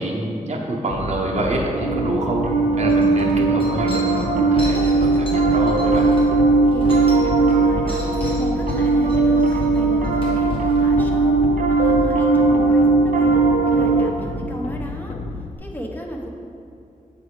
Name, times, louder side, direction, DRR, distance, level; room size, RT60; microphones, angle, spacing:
voice 1, 0.0-2.5 2.8-6.1, right 1 dB, 55° right, -1 dB, 0.7 m, -26 dB
sound 1, 0.9-15.6, left 2 dB, 60° left, 0.4 m, -30 dB
Piano, 1.6-14.1, right 3 dB, 85° right, 0.5 m, -18 dB
sound 2, 2.4-2.5 2.9-7.5 7.9-10.8, left 1 dB, 40° left, 1.5 m, -39 dB
voice 2, 6.6-11.4 11.8-13.3 13.6-15.1 15.6-16.3, equal, 15° left, -1 dB, 0.8 m, -34 dB
7.5 x 4.7 x 3.3 m, 2.5 s
wide cardioid pair, 105°, 14 cm